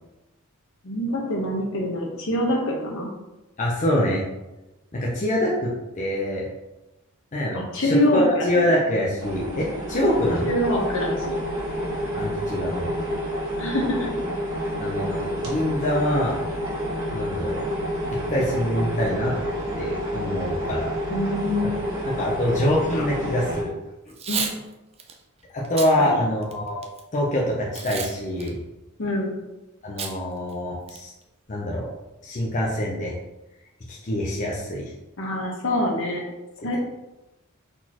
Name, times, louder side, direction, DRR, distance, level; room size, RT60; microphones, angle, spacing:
voice 1, 0.8-3.1 7.5-8.5 10.4-11.4 13.6-14.0 21.1-21.8 24.3-24.5 26.0-26.2 29.0-29.3 35.2-36.2 36.6-36.8, left 1 dB, 65° left, -1 dB, 1.0 m, -25 dB
voice 2, 3.6-4.2 4.9-5.7 6.0-6.5 7.3-10.5 12.1-12.9 14.8-16.4 17.1-17.6 18.3-19.3 19.8-20.9 22.0-23.7 25.5-26.8 27.1-28.6 29.8-31.1 31.5-31.9 32.2-33.1 33.9-34.9, left 1 dB, 35° left, -4 dB, 0.6 m, -25 dB
sound 1, 9.2-23.6, equal, 65° right, 1.3 m, -29 dB
Packing tape duct tape / Tearing, 24.1-24.6 25.0-25.1 25.6-25.9 26.4-27.0 27.7-28.1 28.4-28.5 30.0-30.1 30.5-30.6 30.9-31.2, right 6 dB, 30° right, 0.5 m, -30 dB
4.2 x 4.1 x 2.9 m, 1.0 s
head